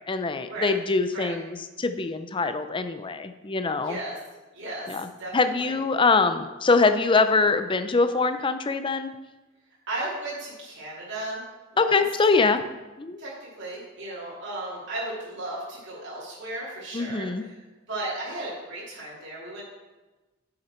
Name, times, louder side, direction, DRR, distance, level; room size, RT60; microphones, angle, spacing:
voice 1, 0.1-4.0 4.9-5.1 5.3-9.1 11.8-12.6 13.0-13.2 16.9-17.4, left 4 dB, 25° left, 9 dB, 0.5 m, -23 dB
voice 2, 3.8-4.2 4.5-5.8 9.9-11.4 11.7-12.0 13.2-17.6 17.9-19.6, right 2 dB, 60° right, -8 dB, 3.0 m, -35 dB
9.4 x 6.7 x 4.4 m, 1.2 s
head